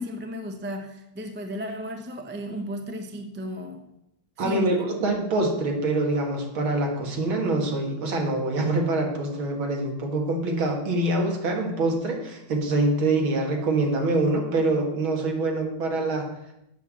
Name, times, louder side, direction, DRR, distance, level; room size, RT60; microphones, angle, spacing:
voice 1, 0.0-3.8 4.4-4.9, equal, 15° right, 0.4 m, -34 dB
voice 2, 4.4-16.3, right 2 dB, 80° right, 2.7 m, -25 dB
8.2 x 6.9 x 7.4 m
omnidirectional pair, 2.2 m